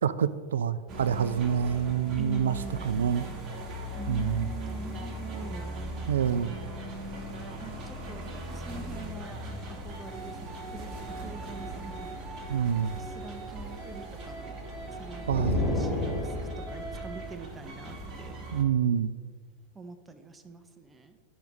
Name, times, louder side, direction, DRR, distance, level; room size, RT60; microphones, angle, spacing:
voice 1, 0.0-2.6 2.8-3.3 4.1-4.5 6.1-6.5 12.5-12.9 15.3-15.6 18.5-19.2, right 8 dB, 65° right, 15 dB, 0.3 m, -27 dB
sound 1, 0.9-18.6, right 1 dB, 30° right, 1.1 m, -39 dB
voice 2, 2.2-2.9 4.0-5.7 7.6-9.4 9.8-12.1 13.0-14.6 15.0-16.3 16.7-18.4 19.7-21.2, right 3 dB, 15° right, 9 dB, 0.7 m, -44 dB
sound 2, 15.2-16.8, left 2 dB, ahead, 1.7 m, -30 dB
11.5 x 4.9 x 3.1 m, 1.5 s
figure-of-eight pair, 90°, 0 cm